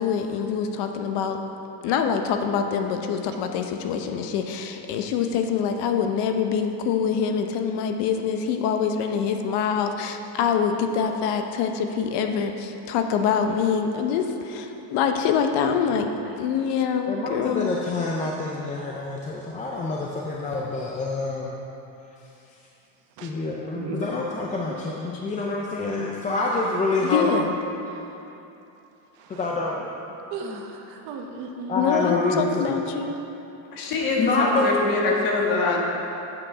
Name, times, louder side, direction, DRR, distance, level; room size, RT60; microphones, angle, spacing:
voice 1, 0.0-1.4 1.8-16.1 16.4-17.7 27.0-27.5 31.8-33.1, left 7 dB, 65° left, 5 dB, 0.8 m, -25 dB
voice 2, 17.1-21.5 23.2-27.3 29.3-29.9 30.4-30.6 31.7-32.8 34.2-34.8, left 3 dB, 20° left, -2 dB, 0.4 m, -27 dB
voice 3, 30.3-31.9, right 5 dB, 65° right, 2 dB, 1.2 m, -35 dB
voice 4, 33.7-35.8, left 3 dB, 45° left, -1 dB, 1.5 m, -24 dB
8.4 x 7.8 x 4.9 m, 2.9 s
cardioid pair, 160°, 45 cm